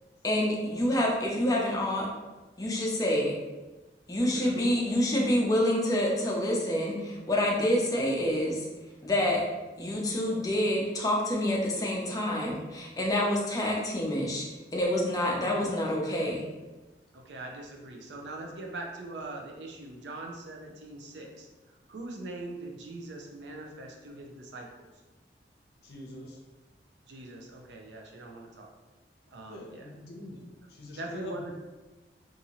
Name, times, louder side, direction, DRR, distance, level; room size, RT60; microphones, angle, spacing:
voice 1, 0.2-2.1 2.6-3.3 4.1-8.6 9.0-9.4 9.8-14.5 14.7-16.4, left 1 dB, 20° left, -2 dB, 0.5 m, -27 dB
voice 2, 4.3-4.8 17.1-21.5 21.9-24.7 27.1-28.7 29.3-29.9 31.0-31.5, right 2 dB, 85° right, 1 dB, 0.5 m, -41 dB
voice 3, 25.8-26.4 29.5-30.4 30.7-31.5, left 1 dB, 65° left, 0 dB, 0.6 m, -44 dB
2.7 x 2.6 x 2.9 m, 1.1 s
head